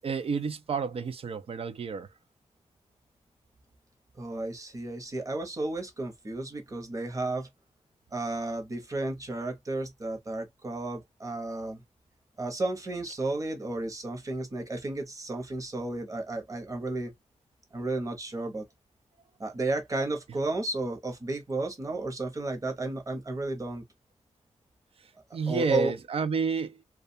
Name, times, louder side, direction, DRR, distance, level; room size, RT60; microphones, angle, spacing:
voice 1, 0.0-2.1 25.3-26.8, right 5 dB, 50° right, 0.5 m, -30 dB
voice 2, 4.2-7.5 8.1-11.8 12.4-17.1 17.7-18.6 19.4-23.8 25.5-25.9, right 2 dB, 25° right, 0.9 m, -33 dB
2.4 x 2.3 x 2.6 m
wide cardioid pair, 135°, 12 cm